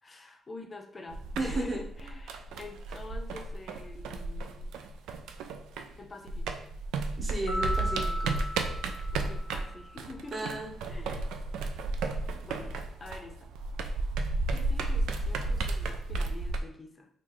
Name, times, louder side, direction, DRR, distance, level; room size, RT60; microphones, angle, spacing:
voice 1, 0.0-4.9 6.0-6.6 9.1-10.6 10.9-11.3 12.4-13.5 14.5-17.1, left 3 dB, 30° left, 4 dB, 0.6 m, -46 dB
sound 1, 1.1-6.0 6.3-16.6, right 3 dB, 90° right, 0.3 m, -33 dB
voice 2, 1.4-1.8 7.2-8.4 10.3-10.7, right 2 dB, 30° right, 0 dB, 0.9 m, -34 dB
sound 2, 7.5-10.0, left 1 dB, 80° left, 0.5 m, -36 dB
3.8 x 2.5 x 3.0 m, 0.64 s
cardioid pair, 90°, 0 cm